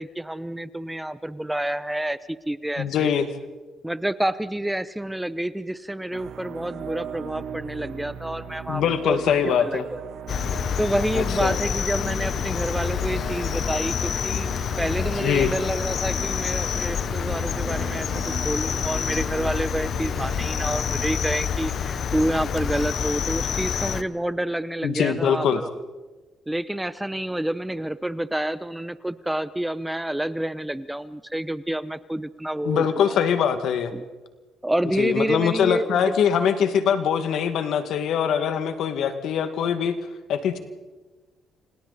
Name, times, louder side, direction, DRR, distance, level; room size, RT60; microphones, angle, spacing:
voice 1, 0.0-2.2 2.5-3.1 3.8-10.0 10.8-14.5 14.8-25.7 26.5-33.2 33.9-34.0 34.6-36.1, right 1 dB, 5° right, 14 dB, 0.9 m, -28 dB
voice 2, 2.8-3.3 8.7-9.8 11.1-11.5 15.2-15.5 24.8-25.6 32.6-33.9 35.0-40.0 40.3-40.6, left 8 dB, 75° left, 8 dB, 2.1 m, -23 dB
sound 1, 6.1-24.2, right 6 dB, 75° right, 1.4 m, -38 dB
Cricket, 10.3-24.0, left 8 dB, 60° left, 0.9 m, -27 dB
30.0 x 26.5 x 4.2 m, 1.2 s
cardioid pair, 90°, 0 cm